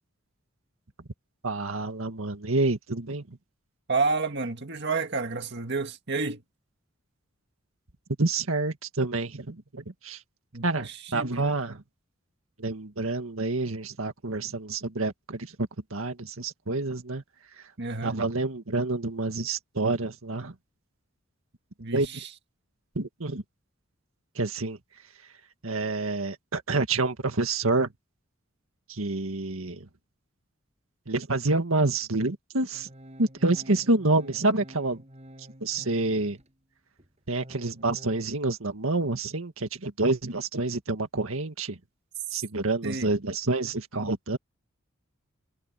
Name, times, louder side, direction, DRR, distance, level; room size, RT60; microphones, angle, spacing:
voice 1, 1.4-3.4 8.2-10.2 10.6-11.8 12.6-17.2 17.6-17.7 18.0-20.5 21.9-22.2 23.0-23.4 24.4-24.8 25.6-27.9 28.9-29.9 31.1-32.9 33.2-35.0 35.6-36.4 37.3-41.8 42.3-44.4, right 2 dB, 90° right, 1.9 m, -28 dB
voice 2, 3.9-6.4 10.5-11.3 17.8-18.2 21.8-22.3 42.8-43.1, right 4 dB, 55° right, 1.9 m, -30 dB
Organ, 32.7-36.5 37.0-38.3, equal, 35° right, 7.2 m, -49 dB
head